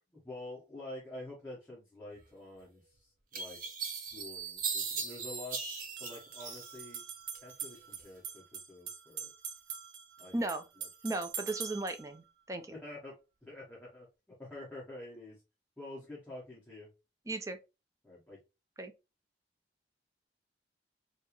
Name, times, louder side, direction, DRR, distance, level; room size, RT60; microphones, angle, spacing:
voice 1, 0.1-3.6 3.9-5.6 6.0-7.0 7.4-9.3 10.2-10.9 12.7-14.1 14.4-15.4 15.8-16.9 18.0-18.4, left 2 dB, 10° left, 1.2 m, -48 dB
sound 1, 2.6-2.7 3.3-7.0 7.3-8.1, right 5 dB, 50° right, 0.8 m, -38 dB
sound 2, 4.2-4.3 5.8-12.1, right 7 dB, 85° right, 0.7 m, -44 dB
voice 2, 10.3-10.6 11.0-12.7 17.3-17.6 18.8-18.9, right 2 dB, 20° right, 0.4 m, -36 dB
4.5 x 2.1 x 2.9 m
head